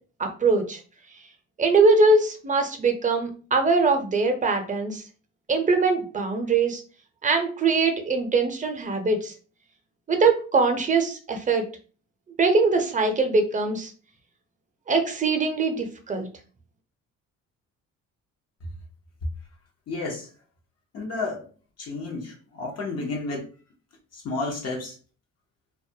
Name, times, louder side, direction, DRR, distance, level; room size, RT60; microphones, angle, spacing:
voice 1, 0.2-0.8 1.6-5.0 5.5-6.8 7.2-9.3 10.1-11.6 12.4-13.9 14.9-16.3, right 3 dB, 25° right, 5 dB, 0.6 m, -22 dB
voice 2, 19.9-20.3 20.9-21.5 21.8-23.5 24.1-24.9, left 3 dB, 55° left, -1 dB, 0.7 m, -31 dB
2.3 x 2.0 x 2.6 m, 0.38 s
cardioid pair, 90°, 30 cm